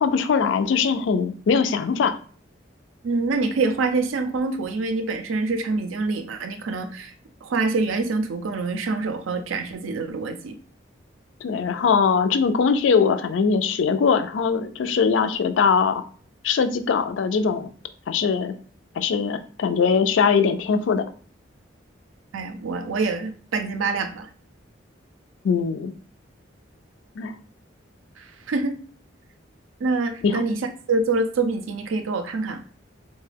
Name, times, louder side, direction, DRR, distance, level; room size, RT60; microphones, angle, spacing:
voice 1, 0.0-2.2 11.4-16.0 16.4-17.7 18.1-18.6 19.0-21.0 25.4-25.9 27.2-27.3 30.2-30.4, left 5 dB, 75° left, 10 dB, 0.3 m, -21 dB
voice 2, 3.0-7.1 7.4-10.6 22.3-24.3 28.2-28.8 29.8-30.6 30.9-32.6, right 3 dB, 85° right, 8 dB, 0.4 m, -25 dB
3.7 x 2.2 x 3.3 m, 0.43 s
head